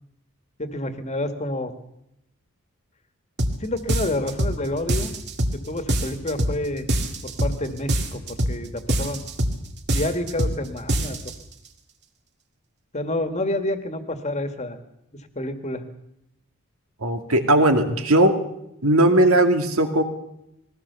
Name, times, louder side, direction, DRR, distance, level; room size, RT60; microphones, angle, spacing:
voice 1, 0.6-1.7 3.6-5.1 5.7-6.9 7.2-9.3 9.9-11.2 12.9-14.8 15.1-15.8, left 1 dB, 30° left, 8 dB, 1.9 m, -28 dB
sound 1, 3.4-3.6 3.9-4.6 4.9-5.6 5.9-6.6 6.9-7.6 7.9-8.6 8.9-9.6 9.9-10.6 10.9-11.3, right 1 dB, 50° right, 2.2 m, -24 dB
voice 2, 17.0-18.4 18.8-20.0, right 1 dB, 70° right, 6 dB, 2.3 m, -18 dB
21.0 x 18.0 x 7.0 m, 0.81 s
head